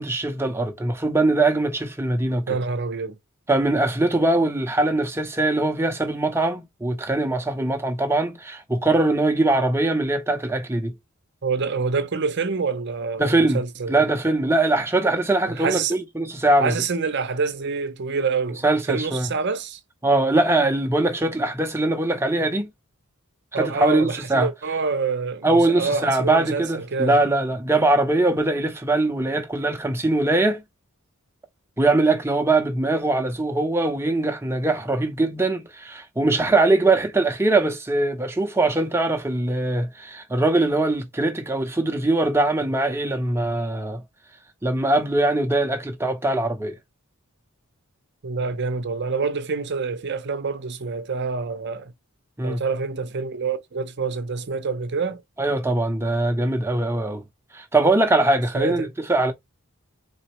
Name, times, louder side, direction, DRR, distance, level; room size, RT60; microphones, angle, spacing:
voice 1, 0.0-2.5 3.5-10.9 13.2-13.6 13.9-16.8 18.6-19.3 20.0-22.7 23.5-24.5 25.4-30.6 31.8-44.0 44.6-46.8 52.4-52.6 55.4-57.2 57.5-59.3, right 2 dB, 10° right, 0.7 m, -22 dB
voice 2, 2.5-3.2 11.4-14.1 15.5-16.0 16.6-19.8 23.5-27.2 48.2-51.9 52.4-55.2 58.5-58.9, right 4 dB, 50° right, 0.7 m, -27 dB
4.1 x 3.9 x 3.0 m
head